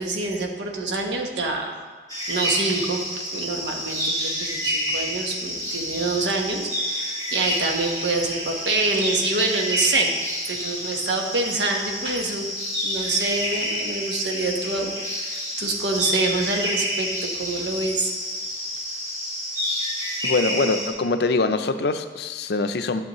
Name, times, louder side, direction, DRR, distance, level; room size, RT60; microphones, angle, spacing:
voice 1, 0.0-1.9 2.3-10.2 10.5-12.5 12.8-18.1, right 2 dB, 85° right, 1 dB, 1.2 m, -26 dB
sound 1, 2.1-20.9, equal, 20° right, 1.7 m, -29 dB
voice 2, 20.2-23.0, left 3 dB, 65° left, 9 dB, 0.5 m, -23 dB
12.0 x 6.9 x 3.0 m, 1.5 s
head